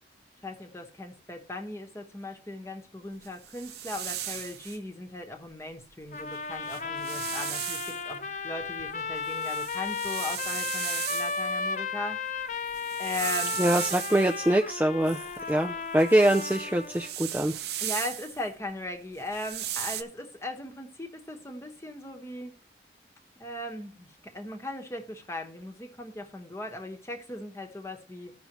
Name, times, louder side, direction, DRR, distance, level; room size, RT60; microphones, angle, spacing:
voice 1, 0.4-12.2 13.0-13.6 17.8-22.5 23.4-28.3, left 1 dB, 15° left, 1.1 m, -38 dB
sound 1, 3.2-4.8 6.2-6.3 6.6-8.0 8.6-11.6 12.5-14.4 15.1-18.4 19.2-20.0, right 11 dB, 65° right, 0.7 m, -36 dB
sound 2, 6.1-17.1, left 5 dB, 40° left, 0.5 m, -34 dB
voice 2, 13.6-15.2 15.5-17.5, right 1 dB, 10° right, 0.4 m, -24 dB
14.5 x 5.5 x 3.0 m
head